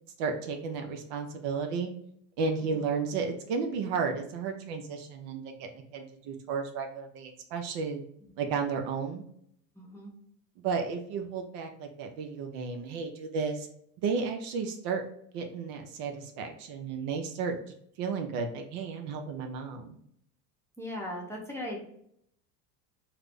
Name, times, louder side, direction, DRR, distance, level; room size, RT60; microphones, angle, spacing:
voice 1, 0.2-1.9 2.4-8.0 8.4-9.2 10.6-13.7 14.0-15.0 15.3-17.6 18.0-20.0, right 5 dB, 55° right, 4 dB, 0.6 m, -33 dB
voice 2, 9.8-10.1 20.8-21.8, left 1 dB, 5° left, -3 dB, 0.7 m, -38 dB
2.4 x 2.0 x 3.5 m, 0.69 s
hypercardioid pair, 90°, 49 cm